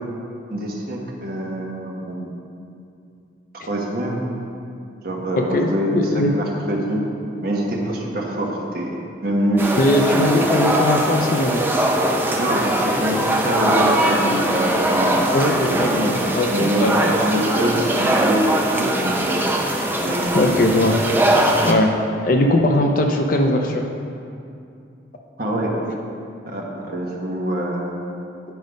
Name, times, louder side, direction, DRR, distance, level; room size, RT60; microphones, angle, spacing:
voice 1, 0.5-2.3 3.5-4.2 5.0-7.0 7.4-9.8 12.3-15.1 15.7-16.1 16.5-19.4 20.0-20.5 25.4-25.7 26.4-27.9, right 1 dB, 50° right, -2 dB, 1.2 m, -24 dB
voice 2, 5.4-6.3 9.8-11.6 15.3-17.1 20.3-21.0 21.4-22.0 22.2-23.8 25.7-25.8, left 1 dB, 45° left, 3 dB, 0.5 m, -20 dB
sound 1, 9.6-21.7, right 1 dB, 10° right, 0.5 m, -21 dB
9.3 x 5.2 x 5.1 m, 2.5 s
head